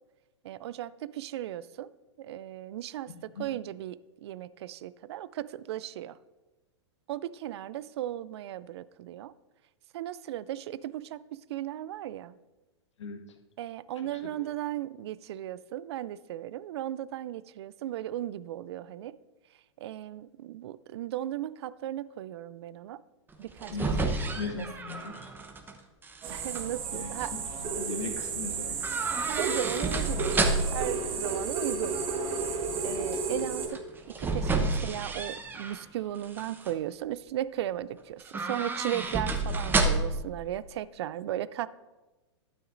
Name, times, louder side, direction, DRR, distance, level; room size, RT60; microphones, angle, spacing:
voice 1, 0.4-1.9 2.2-3.1 3.4-6.2 7.1-9.3 9.9-12.3 13.6-19.2 19.8-23.0 23.4-23.7 24.5-24.7 26.3-27.3 29.2-30.5 30.7-32.0 32.3-33.8 34.2-41.7, right 12 dB, 65° right, 18 dB, 0.4 m, -36 dB
voice 2, 3.1-3.5 13.0-13.4 14.0-14.4 23.7-25.3 26.9-28.8, left 4 dB, 75° left, 5 dB, 1.0 m, -39 dB
sound 1, 23.3-25.7 26.0-26.6 28.8-30.9 33.7-35.8 36.2-36.7 38.2-40.3 40.5-40.6, right 3 dB, 15° right, 0.9 m, -30 dB
sound 2, 26.2-33.7, right 4 dB, 35° right, 1.3 m, -33 dB
12.0 x 9.2 x 2.6 m, 1.1 s
hypercardioid pair, 110°, 15 cm